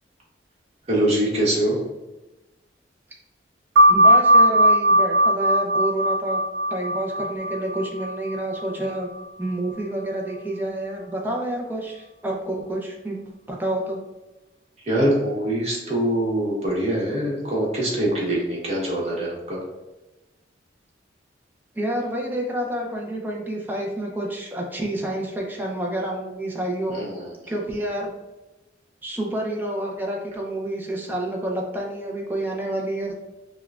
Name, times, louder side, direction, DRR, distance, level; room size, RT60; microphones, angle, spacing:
voice 1, 0.9-1.8 14.8-19.6 26.9-27.5, right 1 dB, 35° right, -4 dB, 1.1 m, -24 dB
sound 1, 3.8-8.9, equal, 80° right, 0.6 m, -18 dB
voice 2, 3.9-6.4 6.7-9.1 9.4-13.2 13.5-14.0 21.8-27.0 27.5-28.1 29.0-33.2, right 1 dB, 10° right, -1 dB, 0.5 m, -28 dB
5.7 x 2.2 x 2.3 m, 1.1 s
head